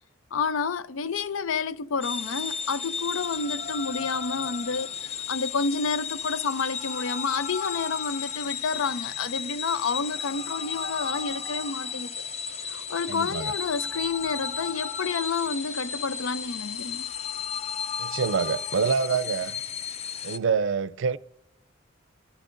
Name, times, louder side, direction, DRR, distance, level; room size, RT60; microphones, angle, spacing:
voice 1, 0.3-12.1 12.7-17.1, left 4 dB, 90° left, 0.5 m, -30 dB
sound 1, 2.0-20.4, left 6 dB, 30° left, 0.5 m, -34 dB
voice 2, 13.1-13.5 18.0-19.6 20.2-21.2, right 5 dB, 70° right, 0.4 m, -26 dB
26.0 x 15.5 x 2.6 m
head